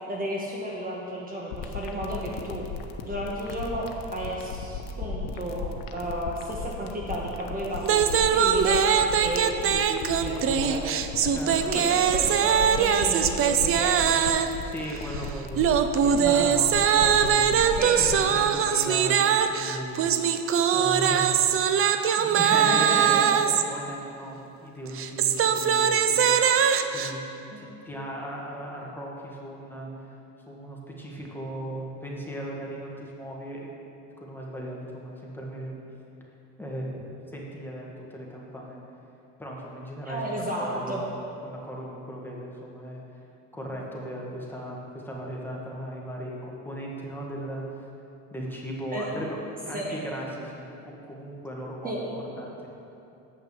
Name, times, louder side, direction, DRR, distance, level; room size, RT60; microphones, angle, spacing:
voice 1, 0.1-2.6 3.1-8.8 9.2-10.9 11.6-14.6 16.2-16.5 17.8-18.0 22.4-23.2 27.5-27.6 40.0-41.0 43.7-43.8 48.9-49.1 49.7-50.0 51.8-52.0, right 1 dB, 25° right, -2 dB, 1.2 m, -33 dB
sound 1, 1.5-18.3, left 5 dB, 70° left, 0.9 m, -35 dB
sound 2, 7.8-14.6 15.6-23.6 24.9-27.1, right 8 dB, 40° right, 0.5 m, -22 dB
voice 2, 11.3-11.9 14.6-17.6 17.9-20.1 20.7-21.6 22.2-26.3 26.9-27.2 27.6-30.1 30.5-33.7 34.2-35.8 36.6-37.0 37.3-38.8 39.4-41.1 41.4-43.0 43.5-47.6 48.3-50.8 51.0-52.1 52.4-52.7, right 1 dB, 5° left, -3 dB, 1.5 m, -37 dB
8.4 x 5.9 x 6.8 m, 2.9 s
cardioid pair, 115°, 35 cm